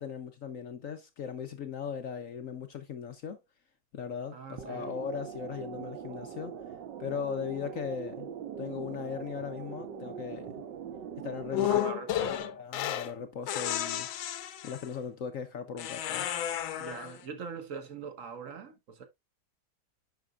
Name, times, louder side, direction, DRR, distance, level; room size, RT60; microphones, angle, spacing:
voice 1, 0.0-3.4 3.9-6.6 7.0-8.3 8.6-10.6 11.2-11.7 12.3-14.1 14.6-16.3, left 7 dB, 65° left, 0.8 m, -38 dB
voice 2, 4.3-5.0 11.5-12.5 16.8-19.0, right 6 dB, 45° right, 1.3 m, -42 dB
sound 1, 4.6-11.8, right 7 dB, 65° right, 1.7 m, -42 dB
sound 2, 11.5-13.1 13.5-14.9 15.8-17.2, left 12 dB, 80° left, 1.6 m, -32 dB
9.3 x 5.8 x 2.4 m
omnidirectional pair, 2.2 m